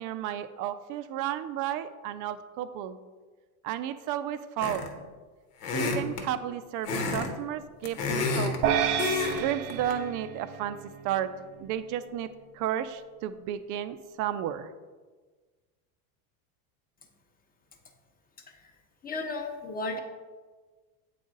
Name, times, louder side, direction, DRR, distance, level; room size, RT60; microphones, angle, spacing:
voice 1, 0.0-3.0 3.6-4.9 5.7-8.5 9.3-10.8 11.0-11.3 11.6-14.7, right 11 dB, 45° right, 12 dB, 0.5 m, -33 dB
sound 1, 4.6-5.0 5.6-6.3 6.8-7.3 7.6-8.6 9.0-9.4 9.7-9.9, left 4 dB, 85° left, 1.3 m, -29 dB
sound 2, 8.6-11.1, right 8 dB, 85° right, 0.7 m, -30 dB
voice 2, 19.0-20.0, left 2 dB, 20° left, 4 dB, 0.8 m, -34 dB
8.3 x 4.0 x 3.8 m, 1.4 s
supercardioid pair, 115°, 45 cm